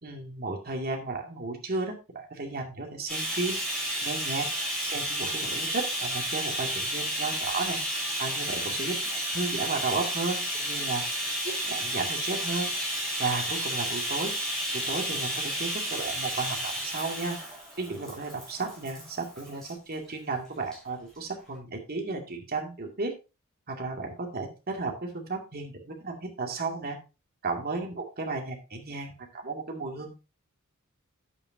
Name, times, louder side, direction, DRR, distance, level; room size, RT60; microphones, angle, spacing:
voice 1, 0.0-3.6 4.0-4.5 4.8-7.8 8.2-11.1 11.7-12.7 13.2-14.3 14.7-17.4 17.8-23.1 23.7-27.0 27.4-30.1, right 3 dB, 45° right, 2 dB, 2.3 m, -34 dB
Bathtub (filling or washing), 3.1-19.7 20.6-20.8 21.1-21.2, equal, ahead, 6.3 m, -32 dB
11.0 x 8.4 x 2.7 m, 0.29 s
head